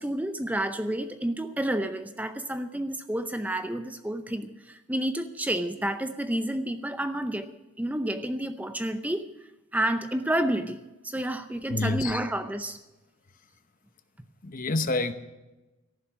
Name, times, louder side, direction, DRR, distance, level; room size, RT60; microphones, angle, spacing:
voice 1, 0.0-7.5 7.8-9.2 9.7-10.8 11.0-12.8, right 1 dB, 5° right, 9 dB, 0.6 m, -30 dB
voice 2, 11.7-12.2 14.4-15.1, left 2 dB, 40° left, 10 dB, 0.9 m, -28 dB
14.0 x 11.5 x 6.2 m, 1.1 s
head